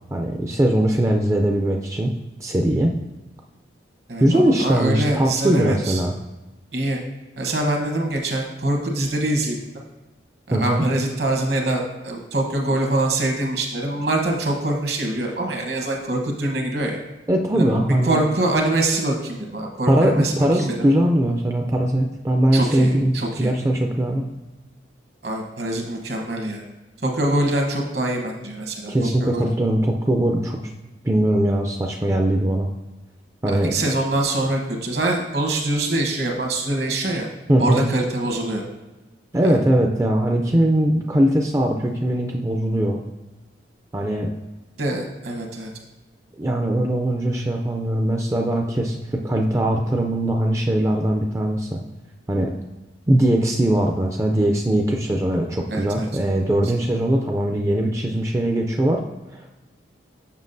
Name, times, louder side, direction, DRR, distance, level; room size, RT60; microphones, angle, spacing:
voice 1, 0.1-2.1 2.4-2.9 4.2-6.1 10.5-10.8 17.3-18.2 19.9-24.3 28.9-30.6 31.0-32.7 33.4-33.8 37.5-37.9 39.3-43.0 43.9-44.3 46.4-51.8 52.3-52.5 53.1-59.0 59.3-59.5, right 1 dB, 15° right, 2 dB, 0.3 m, -20 dB
voice 2, 4.1-6.0 6.7-7.0 7.4-9.6 10.5-17.0 17.5-17.7 18.0-20.7 22.5-23.5 25.2-26.6 27.0-29.5 33.5-37.3 37.6-38.6 39.4-39.6 44.8-45.7 55.7-56.1, right 1 dB, 60° right, 2 dB, 1.0 m, -24 dB
7.1 x 5.9 x 2.6 m, 1.1 s
head